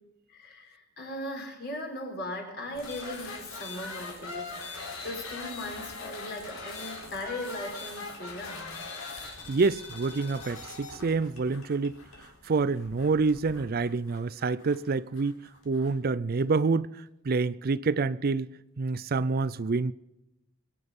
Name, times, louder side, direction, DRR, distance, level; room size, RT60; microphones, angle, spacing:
voice 1, 0.3-8.8, left 1 dB, 50° left, 4.7 m, -38 dB
sound 1, 2.7-16.0, left 3 dB, 70° left, 4.3 m, -42 dB
voice 2, 9.5-12.0 12.5-15.4 15.7-16.9 17.3-18.5 18.8-19.9, right 4 dB, 45° right, 0.4 m, -27 dB
23.5 x 10.0 x 5.4 m
head